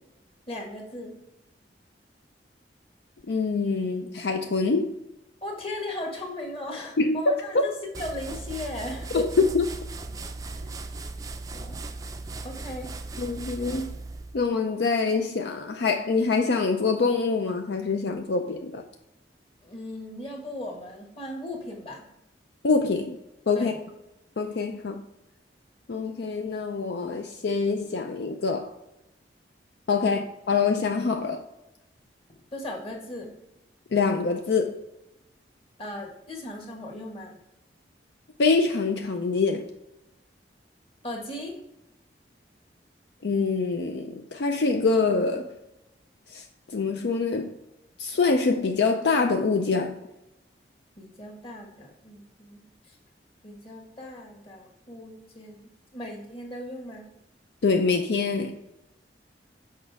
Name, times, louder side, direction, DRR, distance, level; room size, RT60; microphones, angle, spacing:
voice 1, 0.5-1.1 5.4-9.1 10.5-10.8 11.5-11.8 12.4-12.9 19.6-22.0 23.5-23.8 30.0-30.2 32.5-33.3 35.8-37.4 41.0-41.6 51.0-53.0 53.4-55.6 55.9-57.1, left 1 dB, 30° left, 1 dB, 1.4 m, -37 dB
voice 2, 3.3-4.9 7.0-7.2 7.5-7.6 9.1-9.7 13.2-13.9 14.3-18.8 22.6-23.2 23.5-23.7 24.4-25.0 25.9-28.7 29.9-31.4 33.9-34.8 38.4-39.7 43.2-45.5 46.3-47.5 48.0-50.0 57.6-58.6, left 4 dB, 70° left, 5 dB, 0.5 m, -25 dB
sound 1, 7.9-14.5, right 3 dB, 20° right, 0.4 m, -37 dB
6.5 x 5.0 x 3.4 m, 0.89 s
head